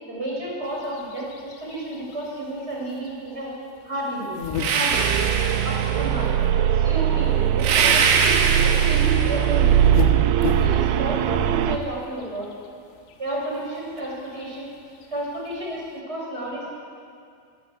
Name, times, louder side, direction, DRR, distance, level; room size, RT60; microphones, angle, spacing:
voice 1, 0.1-3.5 3.8-4.4 4.7-5.3 5.6-6.3 6.7-8.4 8.6-9.9 10.5-12.5 13.2-14.7 15.1-16.7, right 1 dB, 10° right, -3 dB, 6.5 m, -31 dB
sound 1, 0.6-16.0, left 5 dB, 70° left, 3.3 m, -39 dB
sound 2, 4.5-6.2 7.6-9.7, right 5 dB, 60° right, 2.9 m, -23 dB
sound 3, 4.9-11.8, right 10 dB, 80° right, 2.2 m, -21 dB
22.5 x 18.5 x 8.4 m, 2.3 s
omnidirectional pair, 5.5 m